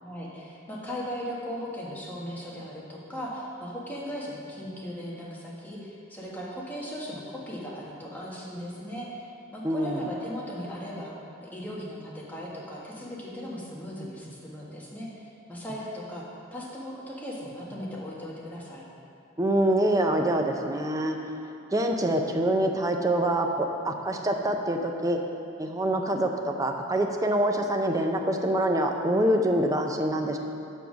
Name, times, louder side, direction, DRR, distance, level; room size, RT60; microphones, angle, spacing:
voice 1, 0.0-9.3 9.5-11.1 11.4-16.2 16.5-18.8, equal, 10° left, -6 dB, 1.5 m, -38 dB
voice 2, 9.6-10.0 19.4-21.2 21.7-25.2 25.6-30.4, right 1 dB, 20° right, 3 dB, 0.6 m, -25 dB
7.0 x 5.5 x 6.2 m, 2.7 s
head